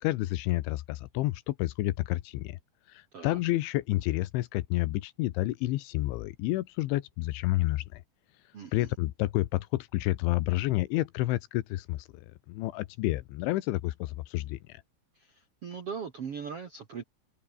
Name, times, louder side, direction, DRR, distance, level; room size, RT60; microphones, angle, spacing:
voice 1, 0.0-2.6 2.9-8.0 8.7-14.6, left 17 dB, 80° left, 3.3 m, -30 dB
voice 2, 8.5-8.9 15.1-17.0, right 6 dB, 60° right, 1.5 m, -40 dB
omnidirectional pair, 5.5 m